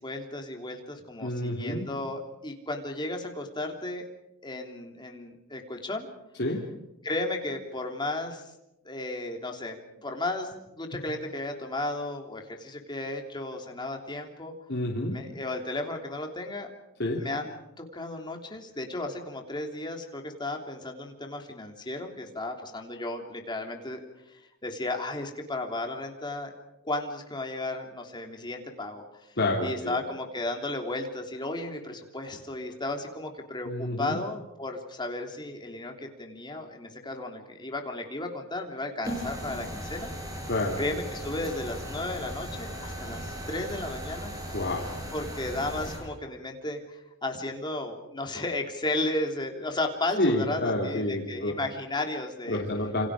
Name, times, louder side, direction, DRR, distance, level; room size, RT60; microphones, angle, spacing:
voice 1, 0.0-4.1 4.4-6.1 7.0-8.5 8.8-9.8 10.0-14.5 15.1-16.7 17.2-26.5 26.8-40.1 40.8-44.3 45.1-52.6, left 2 dB, 20° left, 3 dB, 3.3 m, -34 dB
voice 2, 1.2-1.8 6.4-6.6 14.7-15.1 17.0-17.2 29.4-30.0 33.6-34.2 40.5-40.8 44.5-44.9 50.2-51.5 52.5-53.1, left 1 dB, 50° left, -2 dB, 3.2 m, -28 dB
sound 1, 39.0-46.0, equal, 15° right, 7.1 m, -37 dB
28.0 x 26.5 x 5.0 m, 0.91 s
head